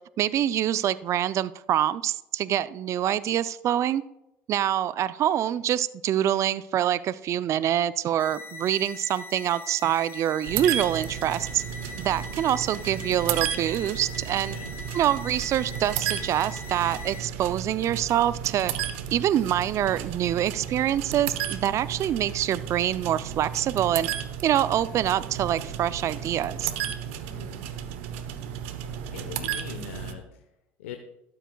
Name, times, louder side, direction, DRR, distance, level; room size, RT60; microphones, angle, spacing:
voice 1, 0.2-4.0 4.5-11.6 12.0-14.6 14.9-18.7 19.1-24.1 24.4-26.7, right 11 dB, 50° right, 16 dB, 0.4 m, -25 dB
sound 1, 8.2-17.2, left 3 dB, 35° left, 2.8 m, -42 dB
sound 2, 10.4-30.1, right 9 dB, 80° right, 1.0 m, -34 dB
voice 2, 29.1-30.4 30.8-31.0, left 9 dB, 90° left, 6 dB, 0.8 m, -41 dB
12.5 x 12.5 x 2.3 m, 0.89 s
hypercardioid pair, 80°, 7 cm